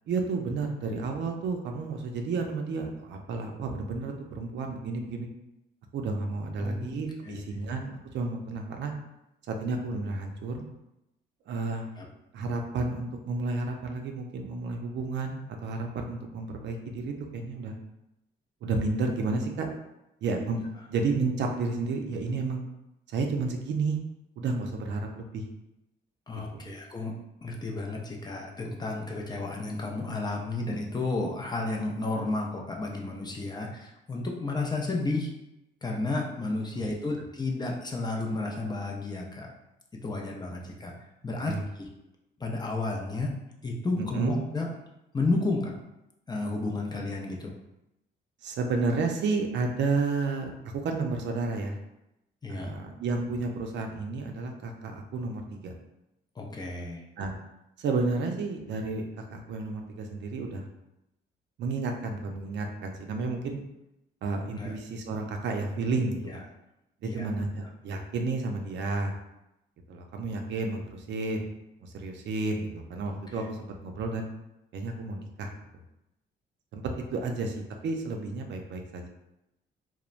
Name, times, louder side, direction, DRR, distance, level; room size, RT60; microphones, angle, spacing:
voice 1, 0.1-5.3 5.9-8.9 9.5-10.7 11.5-11.9 12.3-17.7 18.6-19.7 20.2-20.6 20.9-22.6 23.1-24.0 24.4-25.4 26.6-26.7 36.7-36.8 41.5-41.6 44.0-44.4 48.4-50.6 50.8-51.8 52.5-55.7 57.2-57.3 57.8-59.1 59.3-60.6 61.6-63.6 64.2-66.4 67.0-69.1 69.9-71.5 71.8-74.3 74.7-75.5 76.7-76.8 77.1-79.1, right 3 dB, 65° right, 3 dB, 0.5 m, -31 dB
voice 2, 6.6-7.0 7.2-7.4 12.0-12.1 26.3-35.3 35.8-39.5 39.9-40.9 41.2-41.9 42.4-43.3 43.6-44.7 45.1-45.7 46.3-47.5 52.4-52.7 56.4-57.0 64.6-64.7 66.2-66.4 67.0-67.3 73.3-73.4, left 2 dB, 20° left, -1 dB, 0.5 m, -32 dB
3.0 x 2.1 x 2.4 m, 0.89 s
cardioid pair, 90°, 20 cm